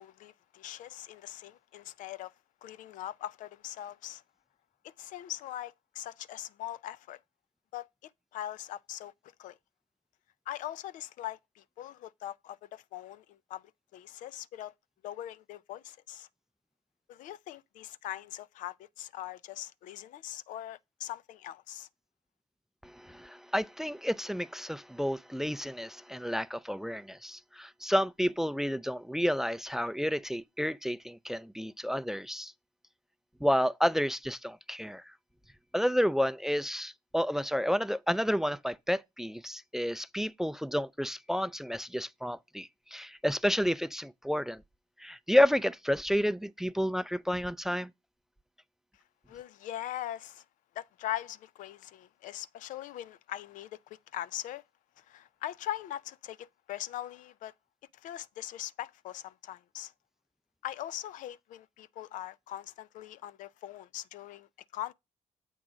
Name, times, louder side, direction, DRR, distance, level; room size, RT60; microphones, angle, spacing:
voice 1, 0.0-2.3 2.6-4.2 4.8-7.2 7.7-9.1 9.4-9.6 10.5-13.6 13.9-14.7 15.0-16.3 17.1-21.9 49.3-50.4 50.8-54.6 55.0-57.5 57.9-59.9 60.6-64.9, left 13 dB, 75° left, 0.4 m, -41 dB
voice 2, 22.8-32.5 33.4-35.1 35.7-44.6 45.0-47.9, equal, 5° right, 0.3 m, -30 dB
7.4 x 3.7 x 6.0 m
supercardioid pair, 70°, 13 cm